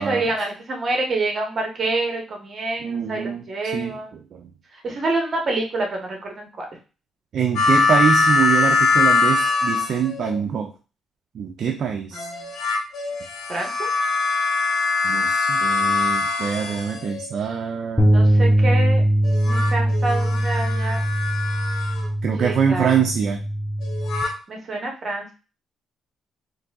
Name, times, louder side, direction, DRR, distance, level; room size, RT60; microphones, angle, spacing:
voice 1, 0.0-4.1 4.8-6.7 12.1-12.3 13.5-13.9 18.0-19.0 19.4-21.0 22.4-23.0 24.5-25.3, right 2 dB, 45° right, 1 dB, 1.1 m, -27 dB
voice 2, 2.8-3.4 3.7-4.0 4.3-4.5 7.3-10.7 11.3-12.3 15.0-18.1 22.2-23.4, right 7 dB, 60° right, 2 dB, 0.4 m, -24 dB
sound 1, 7.6-10.4 12.1-17.4 19.2-22.1 23.8-24.3, left 4 dB, 70° left, 0.7 m, -22 dB
sound 2, 18.0-24.2, right 1 dB, ahead, 0.5 m, -21 dB
3.9 x 2.6 x 2.3 m, 0.33 s
cardioid pair, 90°, 0 cm